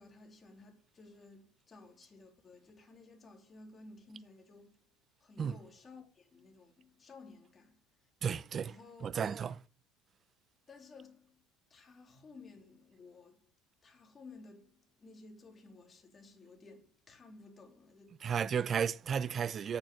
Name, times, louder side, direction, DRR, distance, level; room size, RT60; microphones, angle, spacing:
voice 1, 0.0-8.1 8.6-9.1 10.7-11.4 11.7-13.5 13.8-18.5, left 3 dB, 25° left, 3.5 m, -56 dB
voice 2, 8.2-8.7 9.0-9.6 18.2-19.8, right 7 dB, 35° right, 0.6 m, -33 dB
9.2 x 7.2 x 7.8 m
supercardioid pair, 120°, 0 cm